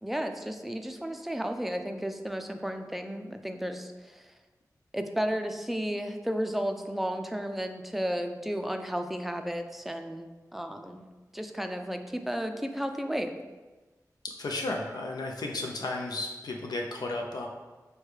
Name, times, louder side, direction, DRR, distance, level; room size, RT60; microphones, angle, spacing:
voice 1, 0.0-4.2 4.9-11.0 11.3-13.3, equal, 5° right, 6 dB, 0.4 m, -33 dB
voice 2, 14.4-17.5, left 2 dB, 85° left, 1 dB, 0.4 m, -33 dB
6.2 x 2.2 x 3.1 m, 1.2 s
wide cardioid pair, 60°, 7 cm